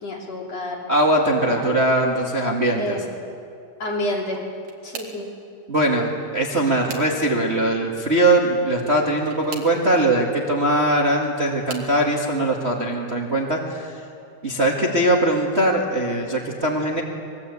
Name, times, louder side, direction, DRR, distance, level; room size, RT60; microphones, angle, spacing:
voice 1, 0.0-0.8 1.4-1.7 2.8-3.0 3.8-4.4 4.8-5.3, left 1 dB, 55° left, -2 dB, 4.7 m, -29 dB
voice 2, 0.9-3.0 5.7-14.0 14.4-17.0, right 1 dB, 25° right, -1 dB, 1.7 m, -21 dB
sound 1, 4.2-5.3 6.2-7.5 9.1-9.8 10.9-12.0 12.7-13.1 13.5-13.6 15.0-15.1, right 5 dB, 85° right, 3.9 m, -40 dB
25.0 x 22.0 x 8.4 m, 2.5 s
omnidirectional pair, 3.6 m